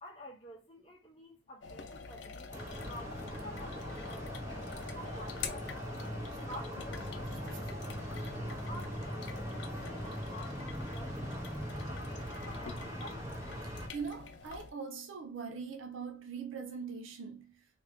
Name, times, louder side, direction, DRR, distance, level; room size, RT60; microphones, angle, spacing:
voice 1, 0.0-5.7 6.2-7.8 8.3-10.7 10.9-11.4 11.8-13.3, left 1 dB, 30° left, 0.8 m, -51 dB
sound 1, 1.6-14.7, left 5 dB, 60° left, 0.5 m, -46 dB
sound 2, 2.5-13.9, equal, 15° right, 0.8 m, -41 dB
voice 2, 13.9-17.6, right 5 dB, 75° right, 0.5 m, -41 dB
2.8 x 2.5 x 3.4 m
head